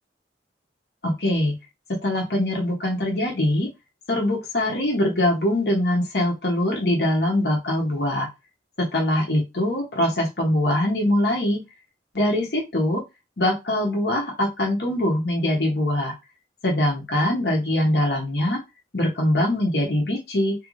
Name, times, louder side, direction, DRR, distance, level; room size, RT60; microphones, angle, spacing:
voice 1, 1.0-1.5 1.9-3.7 4.1-8.3 8.8-11.6 12.1-13.0 13.4-16.1 16.6-18.6 18.9-20.5, left 1 dB, 65° left, 0 dB, 1.0 m, -23 dB
2.9 x 2.6 x 3.1 m, 0.23 s
head